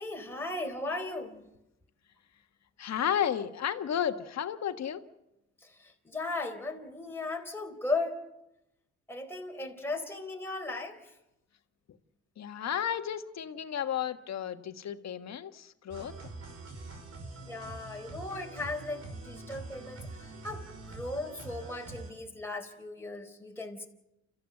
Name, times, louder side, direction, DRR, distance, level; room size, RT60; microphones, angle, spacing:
voice 1, 0.0-1.4 5.6-8.2 9.1-11.0 17.5-20.1 20.4-23.9, left 2 dB, 10° left, 1 dB, 4.1 m, -37 dB
voice 2, 2.8-5.0 12.4-16.2, left 9 dB, 60° left, 8 dB, 1.6 m, -33 dB
sound 1, 15.9-22.1, right 2 dB, 55° right, 5.6 m, -44 dB
29.5 x 14.5 x 7.8 m, 0.91 s
cardioid pair, 90°, 30 cm